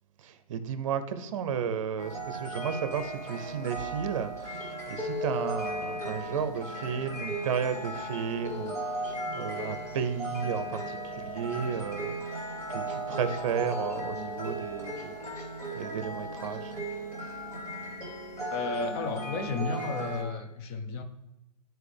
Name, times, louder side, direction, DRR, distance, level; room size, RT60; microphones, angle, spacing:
voice 1, 0.2-15.1 15.7-16.7, right 7 dB, 50° right, 11 dB, 0.7 m, -33 dB
sound 1, 2.0-20.2, right 1 dB, 15° left, 1.9 m, -36 dB
voice 2, 18.5-21.0, left 3 dB, 30° left, 6 dB, 0.8 m, -33 dB
10.0 x 4.5 x 3.4 m, 0.93 s
hypercardioid pair, 130°, 20 cm